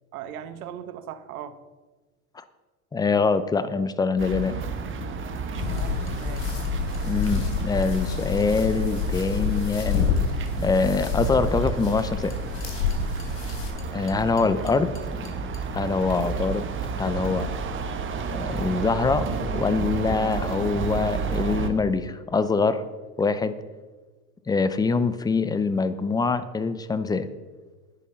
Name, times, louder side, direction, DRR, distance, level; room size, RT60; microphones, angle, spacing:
voice 1, 0.1-1.6 5.7-6.6 14.4-14.7 15.7-16.0, right 9 dB, 70° right, 11 dB, 1.3 m, -39 dB
voice 2, 2.9-4.6 7.0-10.1 10.6-12.4 13.9-14.9 15.2-15.5 15.7-16.6 17.0-17.5 18.3-22.8 23.2-23.5 24.5-27.3, left 4 dB, 10° left, 13 dB, 0.5 m, -24 dB
sound 1, 4.2-21.7, right 5 dB, 25° right, 1.4 m, -31 dB
sound 2, 5.6-13.7, left 6 dB, 60° left, 4.0 m, -28 dB
sound 3, 5.8-10.9 12.0-15.6, left 5 dB, 30° left, 2.1 m, -52 dB
10.5 x 10.0 x 5.7 m, 1.3 s
hypercardioid pair, 105°, 45 cm